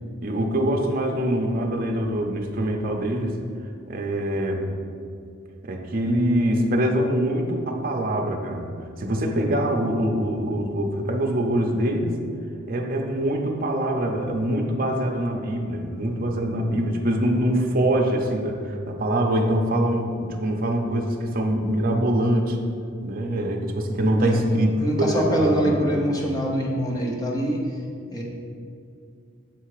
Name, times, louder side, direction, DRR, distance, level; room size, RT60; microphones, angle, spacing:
voice 1, 0.2-3.3 3.9-4.7 5.6-8.7 9.0-12.1 12.7-22.6 23.0-24.7 25.0-25.8, right 1 dB, 40° right, 1 dB, 0.6 m, -24 dB
voice 2, 24.8-27.6 28.1-28.2, equal, 15° left, -2 dB, 0.9 m, -24 dB
7.5 x 3.4 x 4.9 m, 2.4 s
head